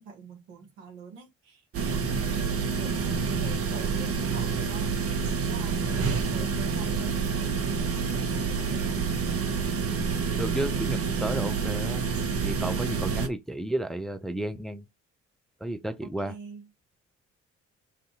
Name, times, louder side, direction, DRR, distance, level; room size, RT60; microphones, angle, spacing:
voice 1, 0.0-9.0 16.0-16.7, right 5 dB, 80° right, 1.1 m, -45 dB
sound 1, 1.7-13.3, right 5 dB, 40° right, 0.8 m, -28 dB
voice 2, 10.4-12.1 12.4-14.9 15.6-16.3, right 1 dB, ahead, 0.6 m, -32 dB
2.6 x 2.4 x 4.0 m
hypercardioid pair, 50°, 34 cm